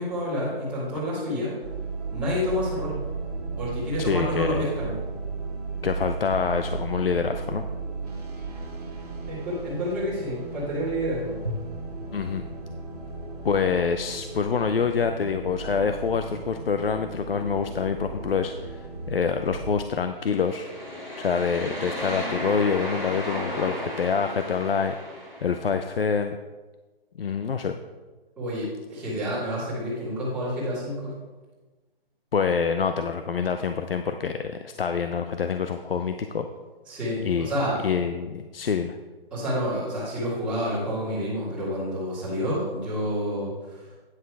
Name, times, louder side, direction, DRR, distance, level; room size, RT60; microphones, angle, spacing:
voice 1, 0.0-1.5 2.1-3.0 3.6-5.0 9.3-11.4 28.4-31.1 36.9-37.8 39.3-44.0, equal, 5° right, -11 dB, 1.9 m, -29 dB
sound 1, 1.6-19.8, right 4 dB, 40° right, 1.9 m, -35 dB
voice 2, 4.0-4.7 5.8-7.6 12.1-12.4 13.4-20.7 21.2-24.9 25.4-26.4 27.2-27.8 32.3-36.5 37.2-37.5 37.8-39.0, left 6 dB, 65° left, 7 dB, 0.6 m, -26 dB
sound 2, 20.2-25.6, equal, 10° left, 1.6 m, -34 dB
9.9 x 6.1 x 4.7 m, 1.3 s
hypercardioid pair, 175°, 31 cm